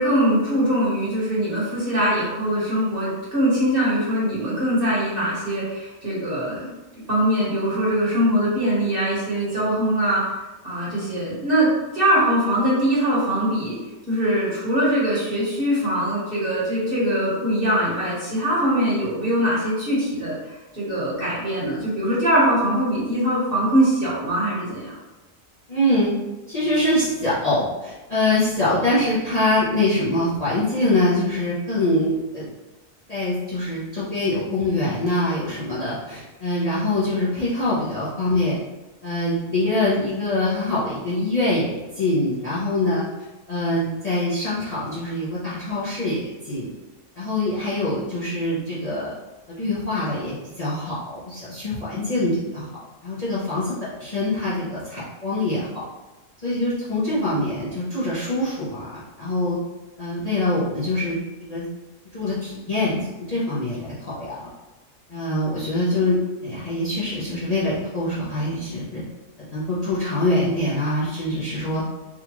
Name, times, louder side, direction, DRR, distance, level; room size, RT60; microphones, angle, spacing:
voice 1, 0.0-6.7 7.1-10.2 10.6-13.8 14.1-24.9, equal, 45° right, -8 dB, 1.4 m, -22 dB
voice 2, 25.7-26.1 26.5-32.5 33.1-38.6 39.0-43.0 43.5-46.7 47.2-49.1 49.5-52.7 53.0-55.8 56.4-59.6 60.0-61.2 61.5-61.7 62.1-64.5 65.1-66.2 66.4-69.0 69.5-71.8, left 1 dB, 35° left, -11 dB, 0.7 m, -24 dB
3.7 x 2.4 x 3.0 m, 1.1 s
omnidirectional pair, 1.4 m